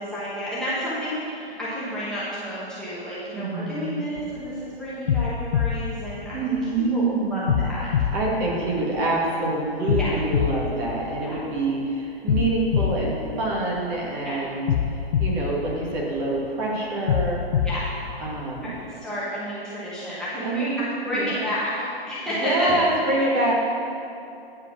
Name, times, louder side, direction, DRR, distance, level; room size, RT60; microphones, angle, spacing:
voice 1, 0.0-7.9 10.0-10.2 11.2-11.4 14.2-14.3 17.6-17.9 18.6-18.7 19.0-23.5, equal, ahead, -11 dB, 1.2 m, -30 dB
voice 2, 3.3-4.1 6.3-7.6 8.1-17.4 18.2-18.8 20.4-20.8 21.1-21.3 22.3-23.5, right 2 dB, 25° right, -4 dB, 1.8 m, -26 dB
sound 1, 4.2-4.5 5.1-6.9 7.5-9.3 9.9-11.7 12.3-14.1 14.7-16.5 17.1-18.9, left 8 dB, 60° left, 0.6 m, -26 dB
9.4 x 5.0 x 5.9 m, 2.6 s
hypercardioid pair, 140°, 31 cm